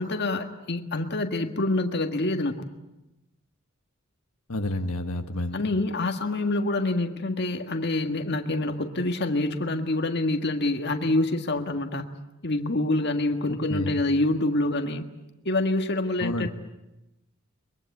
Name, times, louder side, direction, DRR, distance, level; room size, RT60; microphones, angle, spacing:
voice 1, 0.0-2.6 5.5-15.1 15.4-16.5, left 2 dB, 50° left, 5 dB, 1.7 m, -26 dB
voice 2, 4.5-5.6 13.5-14.0 16.2-16.5, left 1 dB, 85° left, 6 dB, 1.4 m, -30 dB
23.0 x 23.0 x 8.4 m, 0.96 s
head